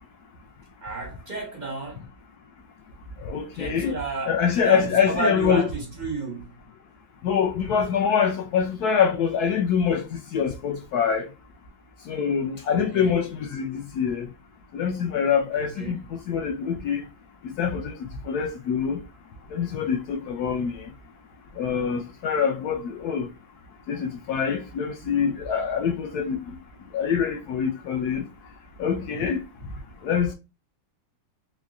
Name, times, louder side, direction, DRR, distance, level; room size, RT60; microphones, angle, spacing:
voice 1, 0.8-2.1 3.5-6.6 12.7-13.2 15.5-16.0, right 3 dB, 45° right, 0.5 m, -32 dB
voice 2, 3.2-4.0 4.3-5.7 7.2-11.3 12.1-14.3 14.7-16.0 16.3-17.0 17.4-18.0 18.2-19.0 19.5-20.9 21.6-23.3 23.9-26.6 26.9-28.2 28.8-29.4 30.0-30.3, left 7 dB, 70° left, 0.9 m, -25 dB
3.7 x 3.1 x 2.4 m
omnidirectional pair, 2.0 m